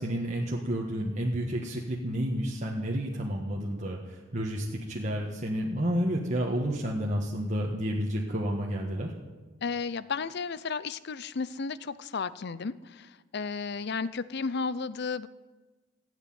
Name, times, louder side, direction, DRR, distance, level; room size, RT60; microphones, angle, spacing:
voice 1, 0.0-9.1, equal, 35° right, -2 dB, 1.5 m, -30 dB
voice 2, 9.6-15.3, left 5 dB, 55° left, 17 dB, 0.6 m, -33 dB
17.0 x 8.2 x 9.3 m, 1.3 s
head